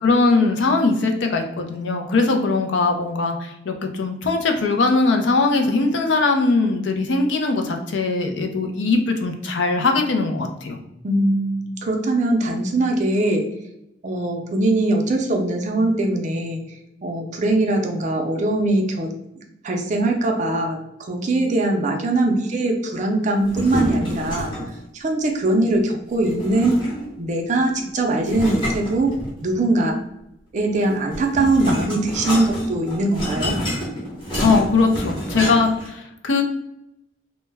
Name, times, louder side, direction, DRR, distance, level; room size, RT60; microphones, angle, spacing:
voice 1, 0.0-10.8 34.4-36.4, left 3 dB, 70° left, 4 dB, 0.4 m, -20 dB
voice 2, 11.0-13.5 14.0-16.6 17.0-19.1 19.6-20.8 21.1-24.5 24.9-26.7 27.2-30.0 30.5-33.5, right 2 dB, 40° right, 2 dB, 0.4 m, -21 dB
sound 1, 23.4-24.8 26.2-27.2 28.2-29.6 30.8-35.9, equal, 25° left, 0.9 m, -28 dB
2.2 x 2.0 x 3.2 m, 0.84 s
head